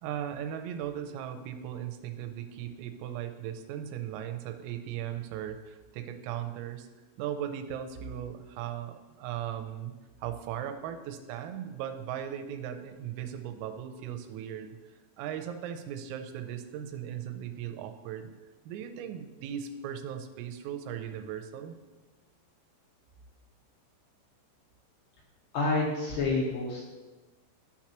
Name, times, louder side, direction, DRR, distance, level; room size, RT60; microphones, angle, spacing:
voice 1, 0.0-6.9 7.2-9.9 10.2-18.3 18.7-21.8, right 9 dB, 90° right, 7 dB, 3.3 m, -38 dB
voice 2, 25.5-26.8, left 3 dB, 75° left, -3 dB, 2.7 m, -28 dB
13.5 x 5.9 x 3.0 m, 1.2 s
omnidirectional pair, 5.9 m